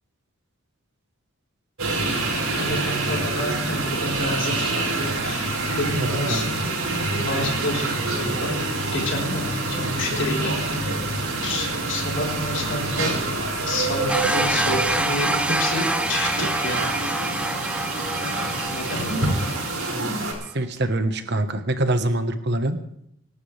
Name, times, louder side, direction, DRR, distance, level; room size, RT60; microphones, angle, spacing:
sound 1, 1.8-20.3, right 2 dB, 85° right, 5.2 m, -26 dB
voice 1, 2.5-4.8 5.2-6.5 7.2-8.5 8.9-10.5 11.4-13.2 13.6-16.8 18.7-19.3, left 1 dB, 55° left, -2 dB, 4.4 m, -29 dB
voice 2, 6.3-6.7 19.9-20.2 20.5-22.8, right 1 dB, 50° right, 9 dB, 1.4 m, -25 dB
sound 2, 14.1-20.0, right 1 dB, 5° right, 0.6 m, -27 dB
26.0 x 12.0 x 3.4 m, 0.74 s
head